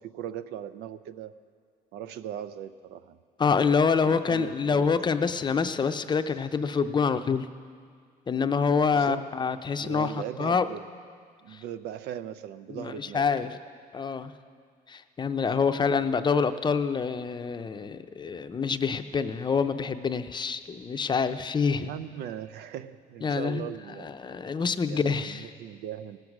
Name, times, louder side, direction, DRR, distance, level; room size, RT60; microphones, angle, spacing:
voice 1, 0.0-1.3 1.9-3.2 4.0-4.9 6.7-6.8 8.9-9.3 9.8-10.9 11.4-13.3 15.6-15.9 21.8-24.1 24.9-26.2, right 10 dB, 80° right, 13 dB, 0.6 m, -39 dB
voice 2, 3.4-7.5 8.3-10.1 10.4-10.7 11.5-11.6 12.7-13.5 13.9-14.3 14.9-21.9 23.2-23.7 24.0-25.5, left 5 dB, 25° left, 9 dB, 0.6 m, -26 dB
18.5 x 7.9 x 6.0 m, 2.1 s
cardioid pair, 110°, 17 cm